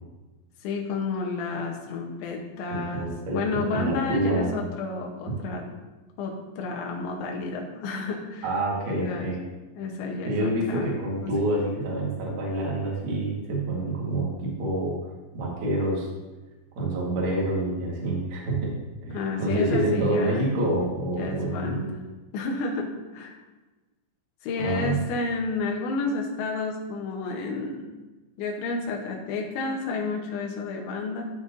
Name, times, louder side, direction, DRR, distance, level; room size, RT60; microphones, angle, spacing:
voice 1, 0.6-5.6 6.2-8.5 8.8-9.3 9.7-11.0 11.2-11.3 19.1-20.5 21.2-22.0 22.3-23.4 24.4-27.8 28.4-31.3, left 3 dB, 80° left, 0 dB, 3.3 m, -31 dB
voice 2, 2.7-4.5 8.4-9.4 10.2-15.0 15.3-16.1 16.7-18.7 19.0-21.8 24.6-25.0, right 1 dB, 75° right, -4 dB, 1.2 m, -27 dB
14.0 x 4.9 x 2.7 m, 1.2 s
omnidirectional pair, 5.4 m